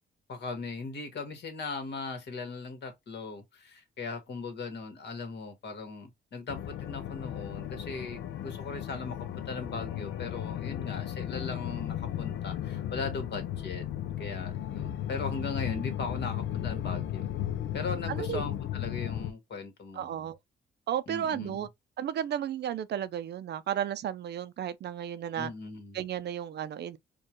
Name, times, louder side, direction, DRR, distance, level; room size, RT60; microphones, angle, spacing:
voice 1, 0.3-13.8 14.2-17.3 17.7-20.3 21.1-21.7 25.4-26.0, left 4 dB, 60° left, 1.6 m, -39 dB
sound 1, 6.5-19.3, left 11 dB, 75° left, 0.6 m, -35 dB
voice 2, 18.1-18.4 19.9-20.4 20.9-21.7 22.0-25.5 25.9-27.0, right 9 dB, 60° right, 0.5 m, -33 dB
4.4 x 2.4 x 3.0 m
cardioid pair, 90°, 20 cm